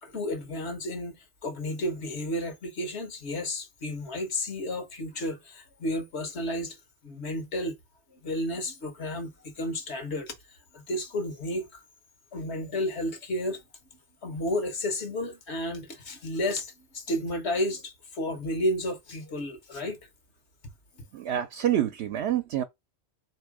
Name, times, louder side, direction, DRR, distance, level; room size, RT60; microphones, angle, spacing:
voice 1, 0.0-6.8 7.0-7.8 8.1-10.3 10.7-11.8 12.3-13.6 14.2-20.0 21.0-21.1, left 1 dB, 80° left, 1.4 m, -32 dB
voice 2, 21.1-22.6, right 11 dB, 80° right, 0.9 m, -27 dB
3.3 x 3.1 x 4.8 m
omnidirectional pair, 1.1 m